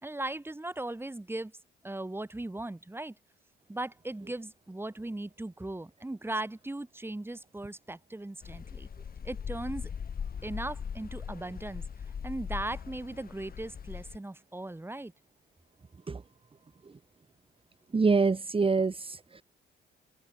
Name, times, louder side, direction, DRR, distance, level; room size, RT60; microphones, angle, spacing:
voice 1, 0.0-1.5 1.8-3.2 3.7-8.9 9.2-9.9 10.4-11.9 12.2-15.1, right 2 dB, 10° right, 4.5 m, -38 dB
sound 1, 8.4-14.2, left 7 dB, 50° left, 6.2 m, -40 dB
voice 2, 17.9-19.4, right 4 dB, 25° right, 2.7 m, -26 dB
open air
cardioid pair, 90°, 20 cm